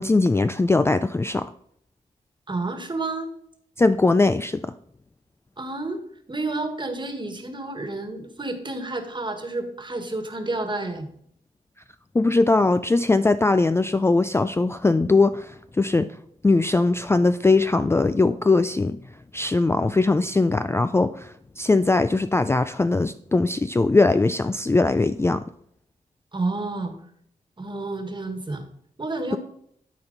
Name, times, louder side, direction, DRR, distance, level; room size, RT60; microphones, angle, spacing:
voice 1, 0.0-1.5 3.8-4.7 12.1-16.2 16.4-19.0 19.3-25.5, left 3 dB, 15° left, 11 dB, 0.3 m, -20 dB
voice 2, 2.5-3.3 5.6-6.0 6.3-11.1 26.3-26.9 27.6-28.6 29.0-29.4, right 2 dB, 30° right, 6 dB, 1.5 m, -30 dB
12.5 x 4.4 x 4.0 m, 0.68 s
cardioid pair, 60°, 15 cm